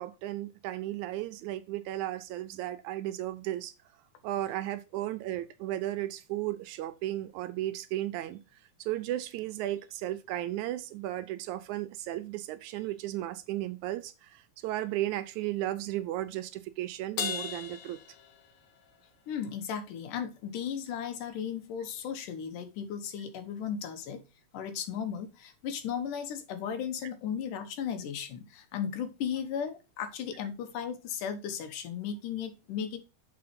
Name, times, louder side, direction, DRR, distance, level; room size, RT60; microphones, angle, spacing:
voice 1, 0.0-3.7 4.2-8.4 8.8-18.0, right 14 dB, 80° right, 1.9 m, -35 dB
Crash cymbal, 17.2-18.9, left 7 dB, 65° left, 2.1 m, -37 dB
voice 2, 19.3-24.2 24.5-33.0, left 8 dB, 85° left, 2.7 m, -36 dB
6.8 x 4.3 x 5.1 m
omnidirectional pair, 3.6 m